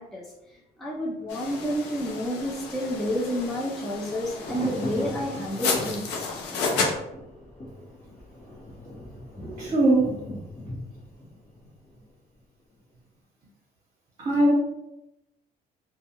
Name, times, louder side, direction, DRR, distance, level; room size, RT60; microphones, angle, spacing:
voice 1, 0.0-6.2 9.4-9.7, equal, ahead, -5 dB, 0.4 m, -30 dB
sound 1, 1.3-6.9, left 4 dB, 85° left, 0.5 m, -32 dB
Thunder, 1.5-12.4 12.7-12.8, left 1 dB, 45° left, 1.0 m, -39 dB
voice 2, 9.6-10.1 14.2-14.5, right 1 dB, 35° right, -6 dB, 0.8 m, -20 dB
2.3 x 2.2 x 2.8 m, 0.89 s
cardioid pair, 110°, 17 cm